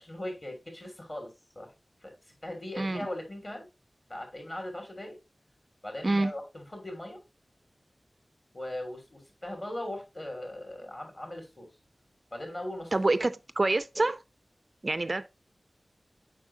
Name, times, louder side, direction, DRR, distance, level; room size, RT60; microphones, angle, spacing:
voice 1, 0.0-1.7 2.0-2.1 2.4-3.7 4.1-5.2 5.8-7.2 8.5-11.7 12.3-12.9, left 1 dB, 35° left, 2.9 m, -39 dB
voice 2, 2.8-3.1 6.0-6.3 12.9-14.2 14.8-15.3, right 2 dB, 45° right, 0.4 m, -27 dB
7.4 x 5.5 x 2.7 m
wide cardioid pair, 65°, 0 cm